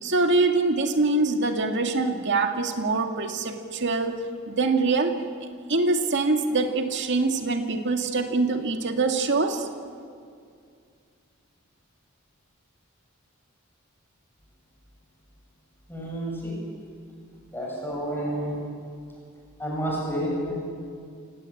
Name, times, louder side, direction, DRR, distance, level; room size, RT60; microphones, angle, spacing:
voice 1, 0.0-5.2 5.7-9.7, right 3 dB, 60° right, 5 dB, 2.0 m, -24 dB
voice 2, 15.9-16.5 17.5-18.5 19.6-20.5, right 1 dB, 10° left, -3 dB, 7.3 m, -29 dB
28.5 x 17.5 x 8.7 m, 2.2 s
head